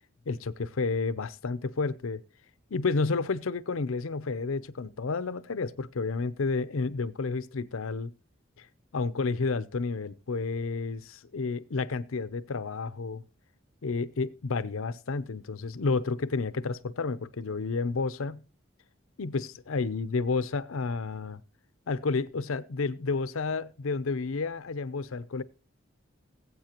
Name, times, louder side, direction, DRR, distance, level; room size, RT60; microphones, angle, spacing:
voice 1, 0.3-2.2 2.7-8.1 8.6-8.7 8.9-13.2 13.8-18.4 19.2-21.4 21.9-25.4, left 4 dB, 85° left, 0.6 m, -31 dB
20.0 x 8.3 x 3.0 m
head